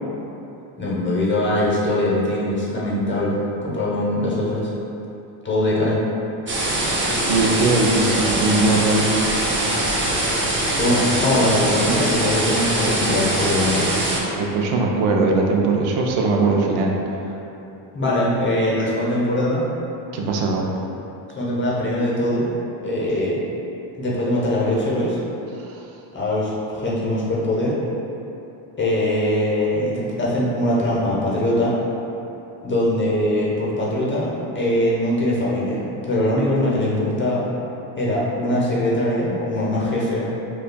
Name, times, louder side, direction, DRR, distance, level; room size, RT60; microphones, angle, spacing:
voice 1, 0.8-4.7 5.4-6.0 10.5-13.9 17.9-19.7 21.4-22.5 22.8-23.4 24.0-25.2 26.1-27.8 28.8-31.7 32.6-37.4 38.0-40.3, left 1 dB, 25° left, -5 dB, 0.8 m, -22 dB
sound 1, 6.5-14.2, right 1 dB, 25° right, 0.6 m, -22 dB
voice 2, 7.3-9.1 14.3-16.9 20.1-20.7 25.7-25.8, right 3 dB, 75° right, 0 dB, 0.6 m, -20 dB
5.1 x 2.3 x 2.2 m, 3.0 s
supercardioid pair, 95°, 49 cm